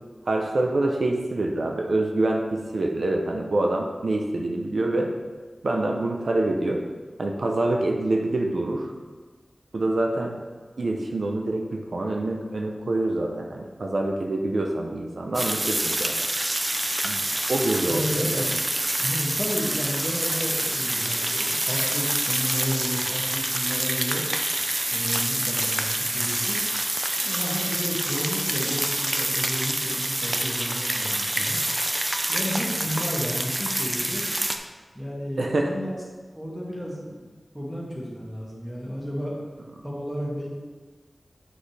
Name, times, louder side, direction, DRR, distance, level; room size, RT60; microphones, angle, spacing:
voice 1, 0.3-5.1 5.6-6.8 7.2-8.9 9.7-10.4 10.8-16.2 17.0-17.2 17.5-18.0 35.4-35.7, right 2 dB, 80° right, 1 dB, 0.7 m, -26 dB
sound 1, 15.3-34.6, right 1 dB, 30° right, 0.5 m, -27 dB
voice 2, 17.9-18.6 19.0-24.2 24.9-26.6 27.2-31.6 32.3-34.2 34.9-36.0 36.4-39.4 39.8-40.5, equal, ahead, -5 dB, 2.1 m, -32 dB
7.7 x 6.1 x 3.4 m, 1.4 s
wide cardioid pair, 75°, 0 cm